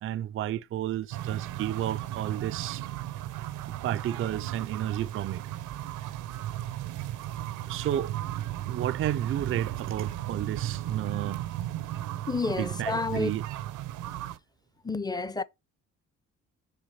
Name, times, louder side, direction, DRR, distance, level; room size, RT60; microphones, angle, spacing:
voice 1, 0.0-2.8 3.8-5.4 7.7-8.1 8.7-11.4 12.6-13.4, right 11 dB, 45° right, 0.4 m, -32 dB
sound 1, 1.1-14.4, right 13 dB, 85° right, 0.7 m, -35 dB
voice 2, 12.3-13.3 14.8-15.4, left 3 dB, 15° left, 0.6 m, -30 dB
6.6 x 3.4 x 5.5 m
cardioid pair, 90°, 30 cm